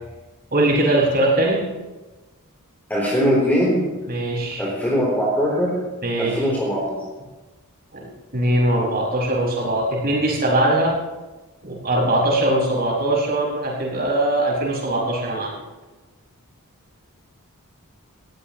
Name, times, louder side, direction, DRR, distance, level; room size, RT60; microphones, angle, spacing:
voice 1, 0.5-1.7 4.1-4.6 6.0-6.5 7.9-11.0 11.6-15.6, right 1 dB, 45° right, -3 dB, 5.6 m, -21 dB
voice 2, 2.9-3.8 4.6-5.7 6.2-7.0, equal, 10° left, -5 dB, 3.4 m, -21 dB
20.5 x 15.0 x 3.0 m, 1.2 s
head